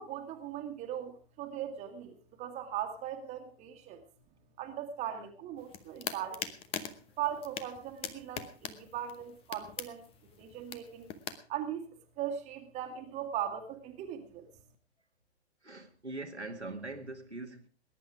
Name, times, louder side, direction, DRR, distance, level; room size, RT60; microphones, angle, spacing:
voice 1, 0.0-4.0 4.6-6.4 7.2-10.0 10.4-11.1 11.5-11.9 12.2-14.5, right 10 dB, 20° right, 1.9 m, -39 dB
sound 1, 5.6-11.4, left 9 dB, 15° left, 1.0 m, -42 dB
voice 2, 15.6-17.7, right 2 dB, 90° right, 2.2 m, -43 dB
20.5 x 10.5 x 4.9 m
figure-of-eight pair, 115°, 33 cm